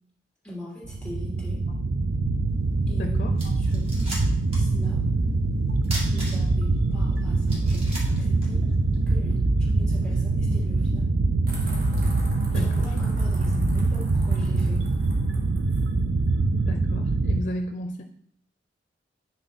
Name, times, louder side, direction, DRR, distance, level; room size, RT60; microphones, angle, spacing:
voice 1, 0.4-1.6 2.9-4.0 4.5-5.0 6.1-8.6 9.1-11.1 12.5-14.9, left 1 dB, 5° left, -8 dB, 3.1 m, -42 dB
sound 1, 0.8-17.4, right 3 dB, 75° right, 0.5 m, -24 dB
voice 2, 2.9-3.5 12.5-12.7 16.5-18.0, equal, 45° left, 6 dB, 0.5 m, -34 dB
sound 2, 3.0-3.1 3.4-4.7 5.0-5.1 5.8-6.7 7.1-7.2 7.5-9.0, equal, 35° right, 2.3 m, -37 dB
sound 3, 11.5-15.9, right 1 dB, 55° right, 1.9 m, -45 dB
8.9 x 4.3 x 4.2 m, 0.69 s
head